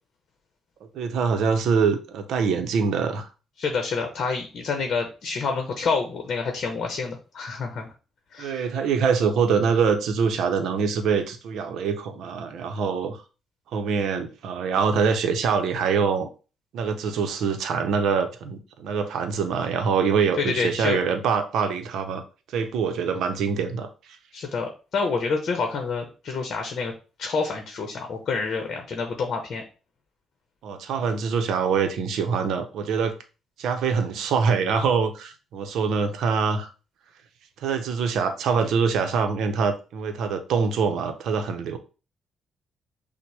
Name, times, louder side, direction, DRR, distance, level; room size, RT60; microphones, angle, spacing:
voice 1, 0.9-3.3 8.4-13.2 13.7-16.3 16.7-22.2 22.5-23.9 30.6-33.2 33.6-36.7 37.6-41.8, right 5 dB, 80° right, 7 dB, 0.6 m, -24 dB
voice 2, 3.6-7.9 8.3-8.6 20.4-21.0 24.3-26.9 27.2-29.6, left 4 dB, 55° left, 4 dB, 0.8 m, -28 dB
5.9 x 2.1 x 3.3 m, 0.33 s
cardioid pair, 90°, 0 cm